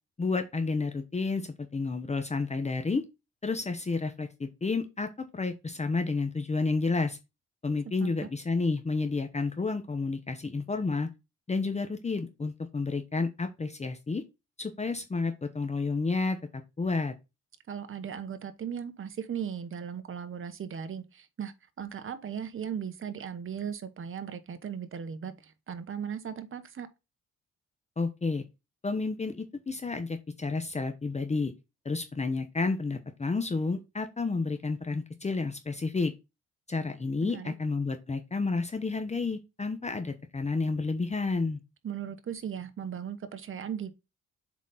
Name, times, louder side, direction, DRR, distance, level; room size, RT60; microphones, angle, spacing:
voice 1, 0.2-3.0 3.4-7.2 7.6-11.1 11.5-14.2 14.6-17.1 28.0-28.4 28.8-31.5 31.8-36.1 36.7-41.6, left 3 dB, 20° left, 1.0 m, -30 dB
voice 2, 17.7-26.9 37.2-37.5 41.8-44.0, right 8 dB, 45° right, 1.2 m, -37 dB
7.4 x 4.1 x 4.1 m
cardioid pair, 90°, 30 cm